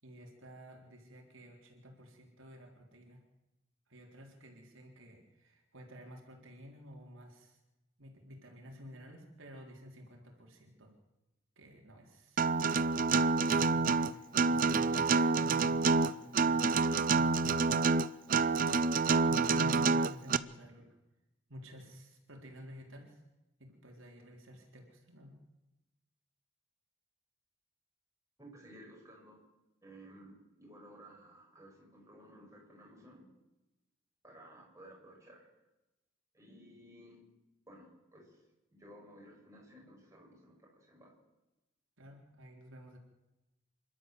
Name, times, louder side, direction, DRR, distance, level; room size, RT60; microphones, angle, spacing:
voice 1, 0.0-3.2 3.9-7.6 8.0-10.9 11.6-13.2 13.5-16.8 17.1-17.9 19.2-20.9 21.5-23.2 23.6-25.4 42.0-43.0, equal, 70° right, 1 dB, 3.8 m, -52 dB
Acoustic guitar, 12.4-20.4, right 4 dB, 40° right, 0.6 m, -27 dB
voice 2, 28.4-29.4 29.8-33.3 34.2-35.5 36.3-37.2 37.7-38.4 38.7-41.1, right 1 dB, 15° right, -3 dB, 6.9 m, -55 dB
27.5 x 12.5 x 7.6 m, 1.0 s
head